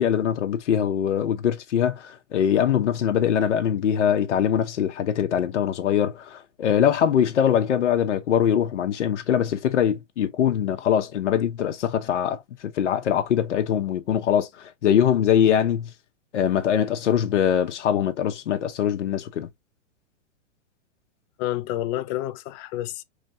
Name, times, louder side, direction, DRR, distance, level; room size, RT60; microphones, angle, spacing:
voice 1, 0.0-15.9 16.3-19.5, left 9 dB, 75° left, 0.9 m, -22 dB
voice 2, 21.4-23.0, left 14 dB, 30° left, 0.5 m, -29 dB
5.2 x 3.3 x 2.6 m
hypercardioid pair, 110°, 36 cm